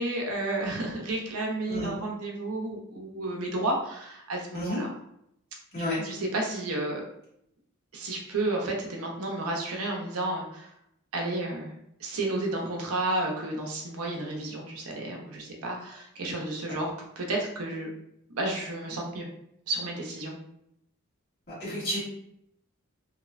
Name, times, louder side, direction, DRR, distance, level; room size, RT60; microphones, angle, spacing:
voice 1, 0.0-4.9 5.8-7.0 7.9-10.7 11.1-11.7 12.0-16.9 17.2-17.9 18.4-19.3 19.7-20.4, right 2 dB, 90° right, 0 dB, 0.6 m, -31 dB
voice 2, 21.6-22.0, left 1 dB, 45° left, -8 dB, 1.4 m, -31 dB
2.9 x 2.0 x 2.4 m, 0.76 s
head